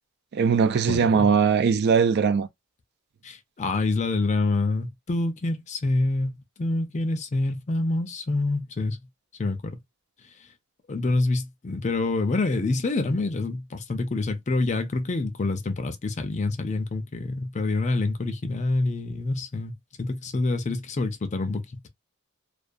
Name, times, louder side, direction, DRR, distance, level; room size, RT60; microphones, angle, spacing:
voice 1, 0.3-2.5, right 6 dB, 50° right, 0.3 m, -20 dB
voice 2, 0.9-1.3 3.2-9.0 9.4-9.8 10.9-19.7 20.0-21.6, left 2 dB, 35° left, 0.5 m, -26 dB
2.3 x 2.3 x 2.5 m
head